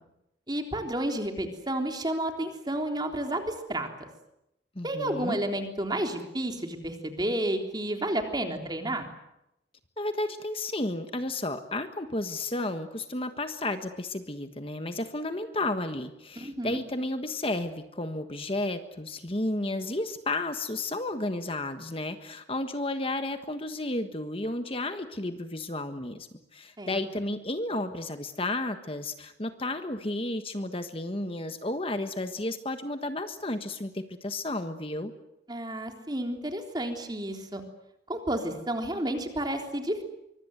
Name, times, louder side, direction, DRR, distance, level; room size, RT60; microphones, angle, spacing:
voice 1, 0.5-3.9 4.8-9.1 16.4-16.8 26.8-27.0 35.5-37.6 38.1-40.0, right 1 dB, 25° right, 4 dB, 3.6 m, -31 dB
voice 2, 4.7-5.4 10.0-35.1, left 2 dB, 30° left, 8 dB, 1.4 m, -32 dB
24.5 x 24.5 x 8.0 m, 0.85 s
head